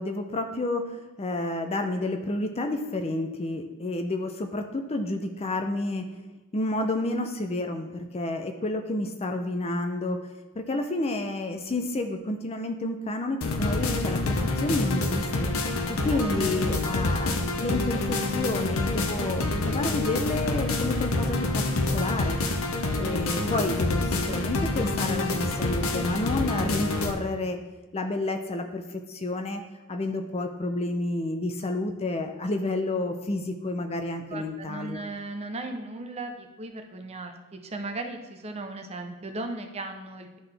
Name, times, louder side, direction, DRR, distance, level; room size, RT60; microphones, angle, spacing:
voice 1, 0.0-6.1 6.5-10.2 10.6-15.5 15.9-21.7 21.9-22.4 23.0-27.6 27.9-29.6 29.9-35.0, left 2 dB, 25° left, 6 dB, 0.5 m, -30 dB
sound 1, 13.4-27.1, left 2 dB, 65° left, 0.7 m, -27 dB
voice 2, 34.3-40.4, right 2 dB, 30° right, 5 dB, 0.6 m, -37 dB
11.0 x 3.9 x 3.3 m, 1.1 s
head